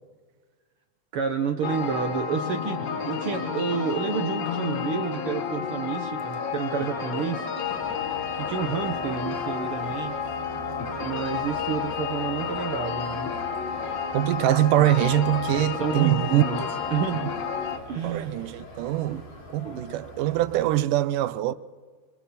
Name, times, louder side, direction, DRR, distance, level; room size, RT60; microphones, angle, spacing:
voice 1, 1.1-7.4 8.4-10.1 11.0-13.3 15.5-16.6 16.9-17.2 17.9-18.3 19.1-19.2 19.6-19.8, right 6 dB, 60° right, 1.5 m, -30 dB
sound 1, 1.6-17.8, left 6 dB, 60° left, 2.5 m, -31 dB
sound 2, 7.6-20.8, equal, 85° left, 5.3 m, -44 dB
voice 2, 14.1-16.7 18.0-19.2 19.5-21.5, right 14 dB, 85° right, 2.3 m, -23 dB
27.0 x 27.0 x 4.3 m
omnidirectional pair, 3.7 m